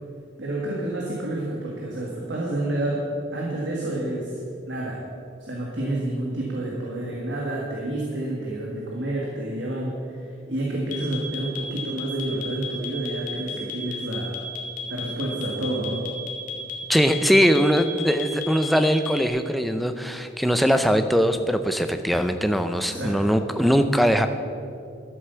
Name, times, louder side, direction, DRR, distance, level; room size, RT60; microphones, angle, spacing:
voice 1, 0.4-3.1 3.3-4.4 4.7-5.0 5.4-14.4 14.9-16.1 22.9-23.3, right 1 dB, 75° right, -2 dB, 1.8 m, -29 dB
sound 1, 10.9-19.3, left 7 dB, 40° left, 1.6 m, -34 dB
voice 2, 16.9-24.3, equal, ahead, 7 dB, 0.5 m, -21 dB
12.5 x 7.9 x 6.9 m, 2.5 s
head